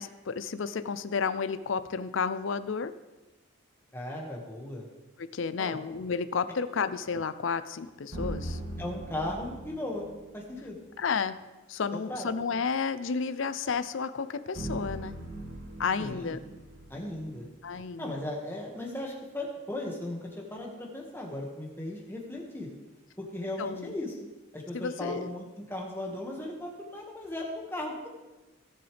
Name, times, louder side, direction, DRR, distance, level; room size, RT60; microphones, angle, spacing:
voice 1, 0.0-2.9 5.2-8.6 11.0-11.4 11.7-15.2 15.8-16.4 17.6-18.2 23.6-23.9 24.7-25.3, left 5 dB, 65° left, 12 dB, 0.5 m, -32 dB
voice 2, 3.9-4.8 5.6-5.8 8.8-10.1 10.3-10.8 11.9-12.4 16.0-16.4 16.9-17.5 18.0-22.7 23.2-24.1 24.5-28.1, left 1 dB, 10° left, -2 dB, 1.8 m, -37 dB
sound 1, 8.1-10.3 14.5-17.8, right 1 dB, 85° right, 3.1 m, -39 dB
17.5 x 6.9 x 3.4 m, 1.1 s
head